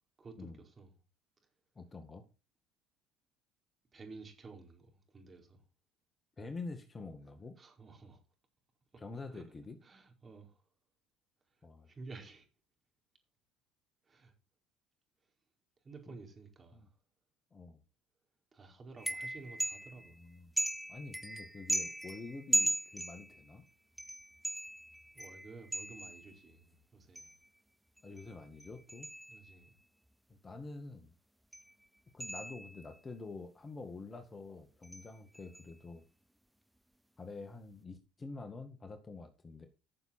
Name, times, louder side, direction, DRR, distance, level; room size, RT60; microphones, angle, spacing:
voice 1, 0.2-1.0 3.9-5.6 7.6-8.2 8.9-9.0 9.3-9.4 9.8-10.6 11.5-12.5 14.0-14.3 15.2-15.3 15.8-17.0 18.5-20.2 25.1-27.3 29.3-29.8, right 3 dB, 30° right, 4.8 m, -53 dB
voice 2, 1.8-2.2 6.4-7.6 9.0-9.8 11.6-11.9 16.1-16.2 16.7-16.9 17.5-17.8 20.1-20.5 20.9-23.6 28.0-29.1 30.3-31.1 32.1-36.1 37.2-39.7, left 3 dB, 25° left, 1.9 m, -47 dB
sound 1, 19.0-20.1 20.6-23.5 24.0-26.4 27.2-27.5 28.0-29.7 31.5-31.7 32.2-33.0 34.8-35.1 35.3-35.7, equal, 5° right, 0.5 m, -38 dB
13.5 x 6.9 x 4.4 m
hypercardioid pair, 75°, 0 cm